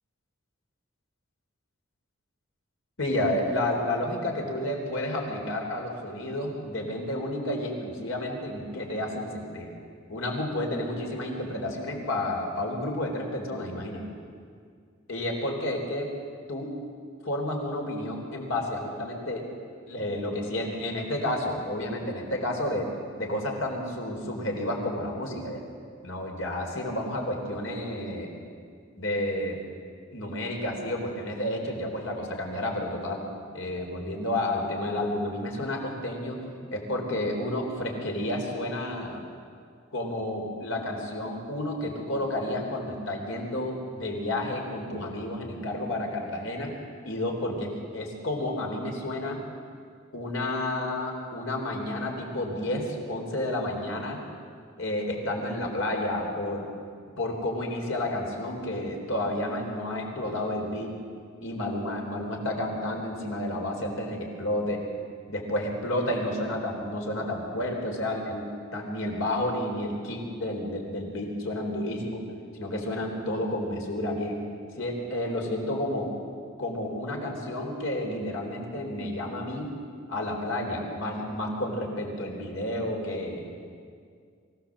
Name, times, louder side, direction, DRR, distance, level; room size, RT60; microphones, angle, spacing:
voice 1, 3.0-9.7 10.1-14.0 15.1-16.1 16.5-16.7 17.2-19.5 19.9-22.9 23.2-25.6 26.0-28.3 29.0-29.6 30.1-33.2 33.5-36.4 36.7-39.2 39.9-46.7 47.0-49.4 50.1-54.2 54.8-56.7 57.2-61.0 61.4-64.8 65.3-72.2 72.5-74.4 74.8-76.1 76.6-79.7 80.1-83.4, left 1 dB, 80° left, 1 dB, 3.9 m, -31 dB
24.0 x 16.0 x 7.5 m, 2.2 s
head